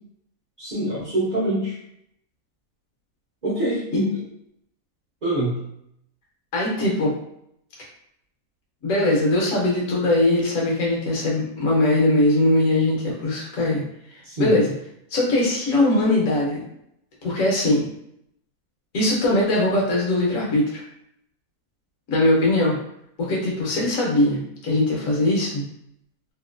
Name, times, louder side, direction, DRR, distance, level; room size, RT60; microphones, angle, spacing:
voice 1, 0.6-1.7 3.4-4.2 5.2-5.5 14.2-14.6, right 1 dB, 35° right, -9 dB, 0.9 m, -24 dB
voice 2, 6.5-7.1 8.8-13.8 14.4-14.7 15.1-16.6 17.2-17.8 18.9-20.8 22.1-22.8 23.2-25.6, left 1 dB, 65° left, -4 dB, 1.3 m, -21 dB
3.0 x 2.8 x 2.5 m, 0.76 s
omnidirectional pair, 1.7 m